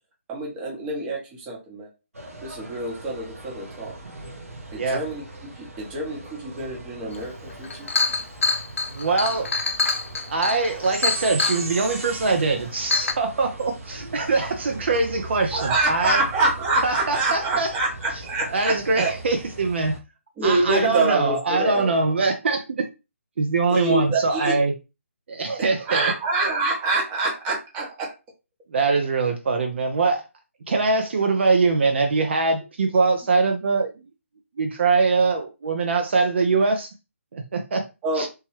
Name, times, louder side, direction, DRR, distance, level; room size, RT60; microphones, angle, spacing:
voice 1, 0.3-1.9 2.4-3.9 4.7-5.2 5.5-7.9 15.5-19.1 20.4-21.9 23.7-24.6 25.8-28.1 38.0-38.3, right 3 dB, 15° right, 0.8 m, -26 dB
sound 1, 2.1-20.0, right 2 dB, 90° right, 0.9 m, -39 dB
Chink clink, 7.2-7.3 7.6-11.6 12.4-12.5 12.9-13.1, left 4 dB, 65° left, 0.6 m, -24 dB
voice 2, 8.9-9.5 10.3-16.2 16.8-17.7 18.5-20.0 20.4-22.9 23.4-24.7 25.3-26.1 28.7-30.2 30.7-34.0 34.6-36.9 37.3-37.9 38.2-38.3, right 3 dB, 55° right, 0.4 m, -23 dB
3.0 x 2.2 x 3.0 m
figure-of-eight pair, 155°, 8 cm